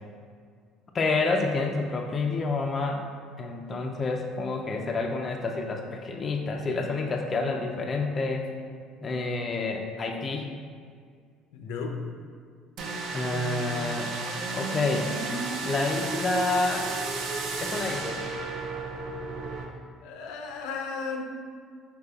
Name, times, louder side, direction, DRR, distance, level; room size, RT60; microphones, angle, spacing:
voice 1, 0.9-3.0 3.4-8.5 9.0-10.5 13.1-14.1 14.5-15.1 15.6-16.9 17.6-18.2, left 3 dB, 25° left, 1 dB, 0.3 m, -28 dB
voice 2, 11.5-12.0 20.0-21.2, left 5 dB, 80° left, 3 dB, 0.5 m, -34 dB
sound 1, 12.8-19.7, right 3 dB, 55° right, 0.5 m, -33 dB
5.0 x 4.5 x 2.3 m, 2.1 s
cardioid pair, 145°, 0 cm